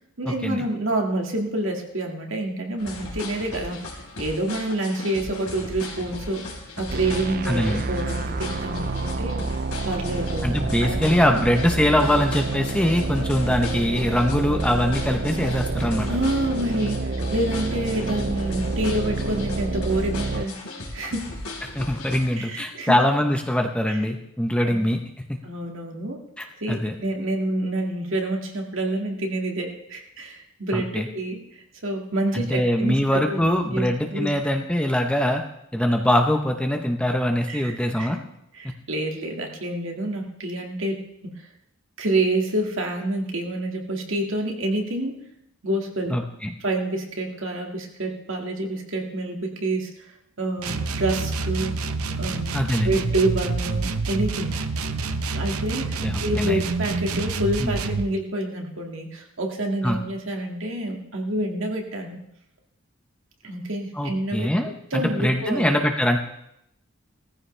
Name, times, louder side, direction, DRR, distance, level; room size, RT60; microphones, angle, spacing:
voice 1, 0.2-6.5 6.8-9.4 9.8-10.5 10.8-11.1 16.1-20.6 20.9-21.3 22.4-23.0 23.9-24.0 24.6-24.9 25.4-26.2 26.6-31.4 31.8-34.3 37.5-38.1 38.5-41.3 42.0-45.2 45.6-46.1 46.6-50.1 50.4-51.8 52.2-54.6 55.3-62.2 63.4-64.5 64.9-65.7, right 1 dB, 60° right, 1 dB, 2.2 m, -28 dB
sound 1, 2.8-22.3, left 2 dB, 85° left, 3.9 m, -37 dB
sound 2, 6.9-20.5, right 3 dB, 40° right, 0.4 m, -28 dB
voice 2, 7.5-7.8 10.4-16.1 21.6-25.0 25.3-25.4 26.4-27.0 30.7-31.1 32.3-35.4 35.7-38.2 46.1-46.5 52.5-53.0 56.0-56.6 57.6-57.8 59.8-60.0 63.9-66.2, left 1 dB, 5° left, 3 dB, 0.8 m, -23 dB
sound 3, 50.6-58.1, right 3 dB, 80° right, 0.8 m, -27 dB
18.5 x 14.5 x 3.4 m, 0.78 s
head